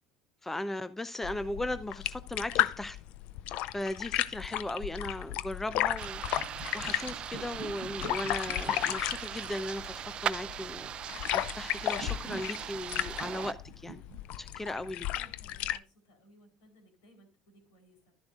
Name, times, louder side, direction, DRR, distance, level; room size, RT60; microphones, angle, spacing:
voice 1, 0.4-3.0 3.7-6.2 6.7-10.9 11.3-14.0 14.4-15.1, left 1 dB, 10° left, 0.6 m, -37 dB
sound 1, 1.2-15.8, left 14 dB, 65° left, 0.4 m, -34 dB
sound 2, 6.0-13.5, right 9 dB, 45° right, 0.4 m, -39 dB
sound 3, 6.0-15.7, right 7 dB, 65° right, 1.0 m, -49 dB
voice 2, 15.1-18.1, right 1 dB, 80° left, 4.0 m, -61 dB
12.0 x 10.5 x 2.5 m
hypercardioid pair, 75°, 2 cm